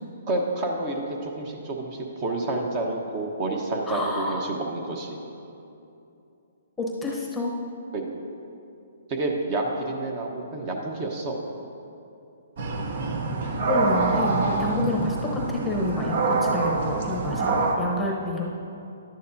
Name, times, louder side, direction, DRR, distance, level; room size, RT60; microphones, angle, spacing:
voice 1, 0.3-5.2 7.9-8.0 9.1-11.4 14.4-14.5, right 2 dB, 35° right, 1 dB, 1.1 m, -29 dB
voice 2, 3.9-4.5 6.8-7.6 13.6-18.5, left 1 dB, 10° left, -2 dB, 0.9 m, -28 dB
sound 1, 12.6-17.8, right 3 dB, 55° right, 1.0 m, -25 dB
11.5 x 9.4 x 2.7 m, 2.7 s
hypercardioid pair, 145°, 0 cm